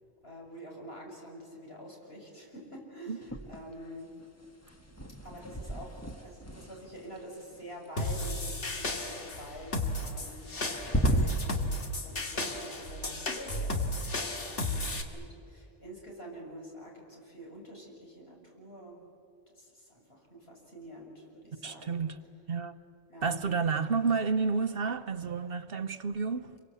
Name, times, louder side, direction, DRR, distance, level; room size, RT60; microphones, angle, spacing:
voice 1, 0.2-4.1 5.2-19.0 19.5-22.0 23.1-23.4, equal, 60° left, 7.6 m, -47 dB
sound 1, 3.2-3.9 4.2-8.3 9.9-10.5 10.8-11.6, right 1 dB, 15° left, 1.5 m, -34 dB
sound 2, 8.0-15.0, left 2 dB, 85° left, 2.5 m, -34 dB
voice 2, 21.6-22.2 22.5-22.8 23.2-26.6, right 5 dB, 60° right, 1.0 m, -30 dB
28.5 x 23.5 x 8.4 m
omnidirectional pair, 1.2 m